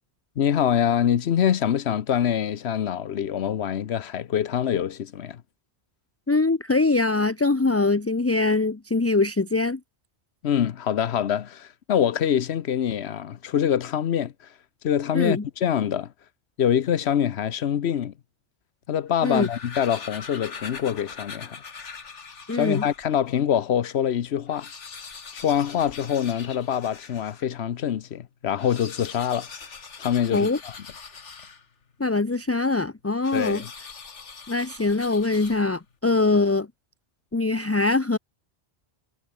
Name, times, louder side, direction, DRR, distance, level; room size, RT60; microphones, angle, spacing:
voice 1, 0.4-5.4 10.4-14.3 14.8-16.1 16.6-18.1 18.9-21.6 22.5-24.7 25.3-29.5 30.0-30.7 33.3-33.7, left 9 dB, 70° left, 1.0 m, -25 dB
voice 2, 6.3-9.8 15.1-15.4 19.2-19.5 22.5-22.8 30.3-30.6 32.0-33.6 34.5-36.7 37.3-38.2, left 3 dB, 15° left, 0.5 m, -23 dB
sound 1, 19.1-23.1 23.7-23.8 24.0-24.1 24.4-27.5 28.5-31.9 33.2-35.9, left 5 dB, 85° left, 2.1 m, -42 dB
omnidirectional pair, 1.2 m